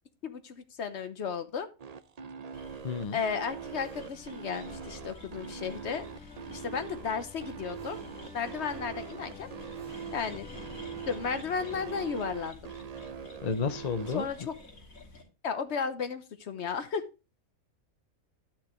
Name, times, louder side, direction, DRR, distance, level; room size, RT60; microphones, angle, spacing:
voice 1, 0.2-1.7 3.1-6.2 6.5-8.0 8.3-9.5 10.1-10.5 11.1-12.6 14.1-14.5 15.4-17.0, left 6 dB, 55° left, 10 dB, 1.1 m, -34 dB
sound 1, 1.8-14.3, right 7 dB, 45° right, 0.5 m, -42 dB
sound 2, 2.5-15.2, left 2 dB, 75° left, 3.1 m, -51 dB
voice 2, 2.8-3.2 13.4-14.3, left 5 dB, 40° left, 10 dB, 0.7 m, -31 dB
sound 3, 3.8-11.8, left 4 dB, 5° left, 3.3 m, -50 dB
12.0 x 5.9 x 3.0 m, 0.29 s
omnidirectional pair, 1.4 m